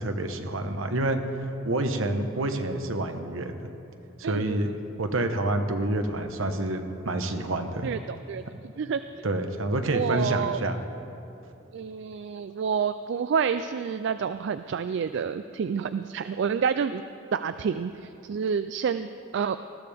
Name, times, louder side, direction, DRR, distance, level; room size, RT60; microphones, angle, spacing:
voice 1, 0.0-3.6 4.2-4.7 5.0-7.9 9.2-10.8, right 2 dB, 75° right, 6 dB, 1.1 m, -28 dB
voice 2, 4.2-4.6 7.8-8.4 8.8-9.0 9.9-10.6 11.7-17.0 17.3-19.6, right 6 dB, 60° right, 11 dB, 0.3 m, -28 dB
20.0 x 14.0 x 3.5 m, 2.8 s
head